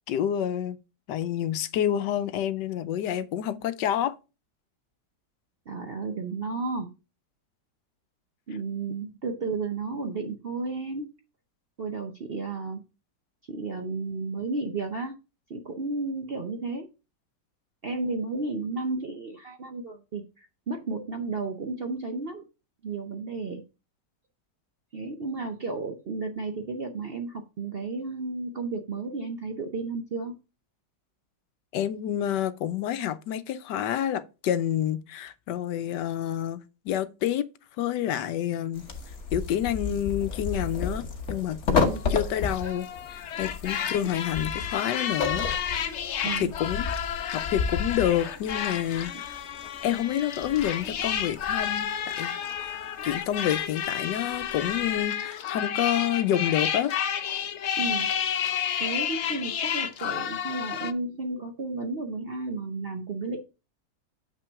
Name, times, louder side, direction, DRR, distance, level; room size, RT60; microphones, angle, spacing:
voice 1, 0.1-0.8 1.1-4.1 31.7-37.5 37.8-38.8 39.3-45.5 46.2-46.9 47.3-49.3 49.8-51.9 52.2-52.7 53.0-56.9, left 10 dB, 85° left, 1.2 m, -28 dB
voice 2, 5.7-6.9 8.5-11.1 11.8-12.8 13.5-15.1 15.5-16.9 17.8-22.4 22.8-23.6 24.9-30.4 41.8-42.0 43.8-43.9 46.2-46.5 57.8-58.1 58.8-63.4, right 3 dB, 55° right, 0.6 m, -33 dB
sound 1, 38.7-55.0, left 4 dB, 45° left, 1.3 m, -33 dB
sound 2, 41.9-60.9, left 9 dB, 65° left, 0.7 m, -31 dB
6.8 x 5.9 x 3.5 m
omnidirectional pair, 1.9 m